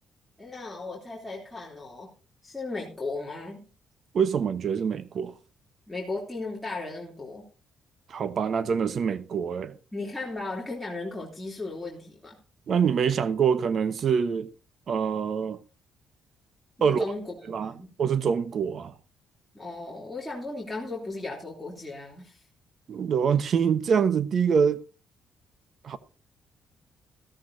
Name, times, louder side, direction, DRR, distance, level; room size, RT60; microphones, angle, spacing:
voice 1, 0.4-2.1 2.4-3.7 5.9-7.4 9.9-12.4 16.8-17.9 19.5-22.4, left 3 dB, 5° left, 3.1 m, -36 dB
voice 2, 4.1-5.3 8.1-9.7 12.7-14.5 14.9-15.6 16.8-17.0 17.5-17.7 18.0-18.9 22.9-24.8 25.8-26.0, right 7 dB, 55° right, 1.0 m, -25 dB
14.0 x 13.5 x 2.7 m
cardioid pair, 90°, 0 cm